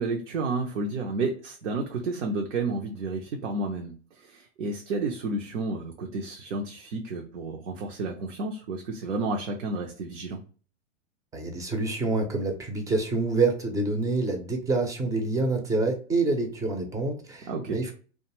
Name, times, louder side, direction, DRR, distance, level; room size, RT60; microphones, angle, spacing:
voice 1, 0.0-10.4 17.5-17.8, right 3 dB, 75° right, 2 dB, 0.6 m, -31 dB
voice 2, 11.3-17.9, right 3 dB, 10° right, 3 dB, 0.4 m, -27 dB
2.5 x 2.3 x 2.9 m, 0.38 s
hypercardioid pair, 115°, 37 cm